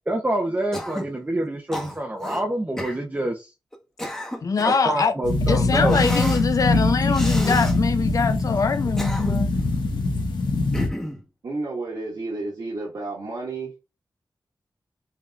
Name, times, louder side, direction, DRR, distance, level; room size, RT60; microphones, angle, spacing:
voice 1, 0.1-3.5 4.6-6.0, right 1 dB, 25° right, 0.8 m, -26 dB
Cough, 0.7-1.2 1.7-2.4 2.8-3.0 3.7-4.9 5.9-6.5 7.1-7.8 8.7-9.6 10.7-11.2, equal, 5° left, 1.2 m, -31 dB
voice 2, 4.4-5.1 5.5-9.5, left 5 dB, 50° left, 0.5 m, -23 dB
sound 1, 5.2-10.9, left 2 dB, 85° left, 1.2 m, -23 dB
voice 3, 11.4-13.7, right 2 dB, 70° right, 2.1 m, -31 dB
5.8 x 3.0 x 2.5 m
wide cardioid pair, 85°, 8 cm